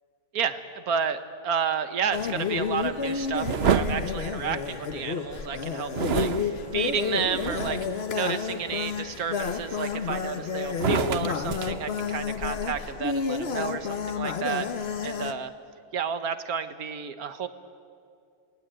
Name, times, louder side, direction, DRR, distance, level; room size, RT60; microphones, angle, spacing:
voice 1, 0.3-1.2 1.4-14.7 15.0-15.5 15.9-17.5, right 7 dB, 70° right, 10 dB, 1.7 m, -31 dB
sound 1, 2.1-15.3, left 5 dB, 45° left, 1.2 m, -30 dB
sound 2, 3.4-5.1 5.9-8.0 8.5-8.9 9.5-10.3 10.7-12.6, right 7 dB, 50° right, 0.9 m, -29 dB
28.0 x 20.0 x 8.8 m, 2.4 s
omnidirectional pair, 1.6 m